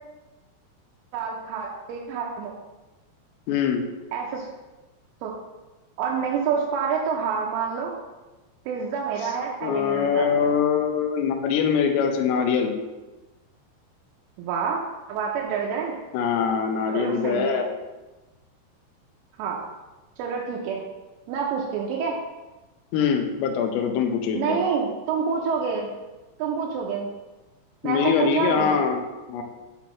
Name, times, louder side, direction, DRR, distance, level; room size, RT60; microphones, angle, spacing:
voice 1, 1.1-2.5 4.1-4.5 5.2-5.3 6.0-8.0 8.7-10.5 14.4-14.8 15.1-15.9 16.9-17.6 19.4-19.6 20.2-20.8 21.3-22.2 24.3-25.9 26.4-27.1 27.8-28.7, right 6 dB, 85° right, -2 dB, 3.2 m, -27 dB
voice 2, 3.5-3.8 9.6-12.7 16.1-17.7 22.9-24.6 27.8-29.0 29.3-29.4, left 7 dB, 85° left, 4 dB, 2.5 m, -23 dB
8.6 x 4.0 x 3.1 m, 1.1 s
omnidirectional pair, 5.6 m